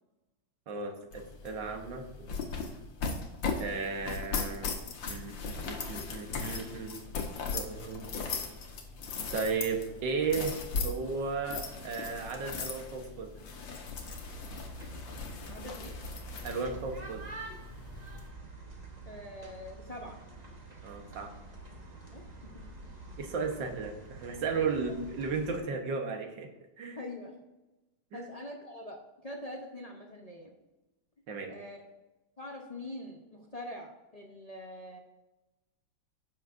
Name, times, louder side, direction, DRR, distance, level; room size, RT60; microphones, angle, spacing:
voice 1, 0.7-2.3 3.6-4.8 5.1-7.0 7.5-8.1 9.3-10.6 10.8-13.3 16.4-17.3 20.8-21.3 23.2-26.5 26.8-27.0 28.1-28.3 31.3-31.5, right 4 dB, 70° right, 4 dB, 1.8 m, -35 dB
sound 1, 1.1-18.3, left 4 dB, 75° left, 1.8 m, -38 dB
sound 2, 14.0-25.6, right 3 dB, 25° right, 1.2 m, -47 dB
voice 2, 15.5-16.0 19.0-20.2 22.1-22.6 24.5-24.7 27.0-27.4 28.1-30.5 31.5-31.9 32.4-35.0, left 1 dB, 35° left, 0 dB, 0.6 m, -44 dB
15.5 x 6.4 x 2.6 m, 1.0 s
omnidirectional pair, 2.1 m